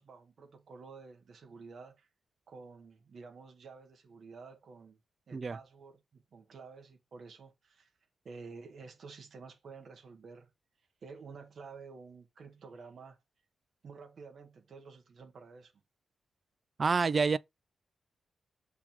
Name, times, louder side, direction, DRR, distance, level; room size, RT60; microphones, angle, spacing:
voice 1, 0.0-2.1 2.5-5.0 5.3-7.9 8.2-10.5 11.0-13.2 13.8-15.7, right 4 dB, 50° right, 1.2 m, -51 dB
voice 2, 16.8-17.4, right 4 dB, 35° right, 0.3 m, -27 dB
7.2 x 3.5 x 4.6 m
wide cardioid pair, 160°, 0 cm